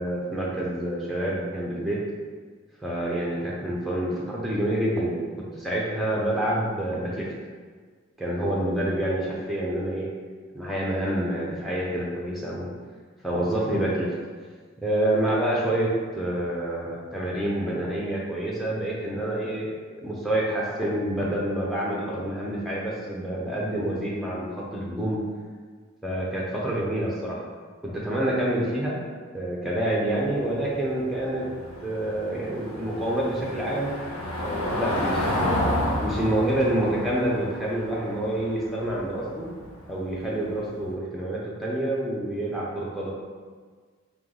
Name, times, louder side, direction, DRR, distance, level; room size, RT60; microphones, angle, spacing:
voice 1, 0.0-2.0 2.8-7.3 8.2-10.1 10.5-12.7 13.2-14.1 14.8-25.2 26.0-27.4 27.8-29.0 29.3-31.5 31.8-33.9 34.4-35.7 36.0-39.5 39.9-43.1, right 1 dB, ahead, -5 dB, 0.7 m, -27 dB
Car passing by / Engine, 30.1-40.8, left 1 dB, 80° left, 0.7 m, -31 dB
3.6 x 2.9 x 3.8 m, 1.6 s
head